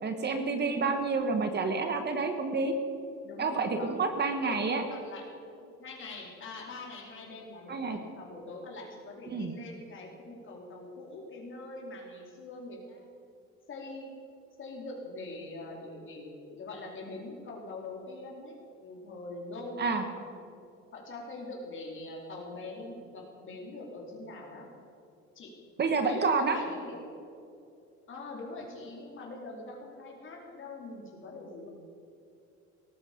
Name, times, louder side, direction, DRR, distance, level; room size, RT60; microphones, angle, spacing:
voice 1, 0.0-2.7 3.4-4.8 7.7-8.0 9.3-9.5 19.8-20.0 25.8-26.6, right 4 dB, 35° right, 6 dB, 1.5 m, -29 dB
voice 2, 3.2-4.1 4.4-5.3 5.8-13.1 13.7-14.1 14.6-18.5 18.8-20.3 20.9-24.7 25.3-25.5 26.0-27.0 28.1-31.7, left 2 dB, 40° left, -1 dB, 4.1 m, -43 dB
18.5 x 14.0 x 5.3 m, 2.6 s
cardioid pair, 125°, 29 cm